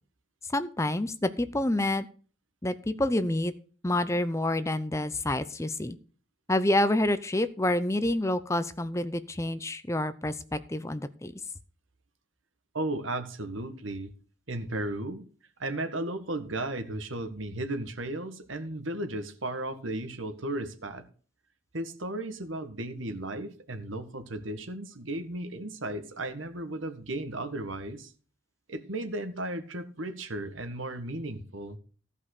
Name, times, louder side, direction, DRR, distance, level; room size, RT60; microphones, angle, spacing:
voice 1, 0.5-2.1 2.6-3.5 3.8-6.0 6.5-11.3, left 1 dB, 15° left, 13 dB, 0.5 m, -28 dB
voice 2, 12.7-14.1 14.5-15.2 15.6-21.0 21.7-28.1 28.7-31.8, right 1 dB, 85° right, 9 dB, 1.6 m, -35 dB
14.5 x 5.4 x 6.6 m, 0.41 s
head